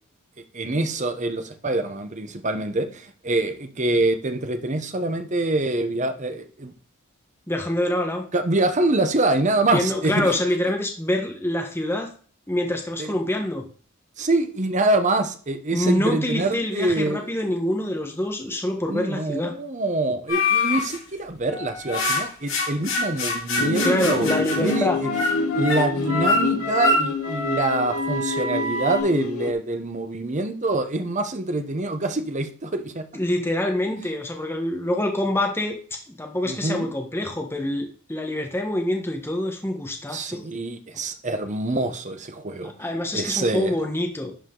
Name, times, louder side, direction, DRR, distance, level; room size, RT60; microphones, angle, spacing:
voice 1, 0.5-6.7 8.3-10.4 13.0-13.1 14.2-17.3 18.9-24.3 24.6-25.1 25.5-33.1 36.4-36.9 40.1-42.7 43.1-43.7, right 2 dB, 35° right, 8 dB, 0.9 m, -25 dB
voice 2, 7.5-8.2 9.7-12.1 12.5-13.6 15.7-19.5 23.8-25.0 33.1-35.8 36.1-40.4 42.6-44.3, left 1 dB, 10° left, 2 dB, 1.2 m, -25 dB
sound 1, 20.3-21.0 21.5-29.0, left 2 dB, 65° left, 3.1 m, -25 dB
sound 2, 23.6-29.5, left 4 dB, 80° left, 0.8 m, -28 dB
11.5 x 4.9 x 3.8 m, 0.42 s
head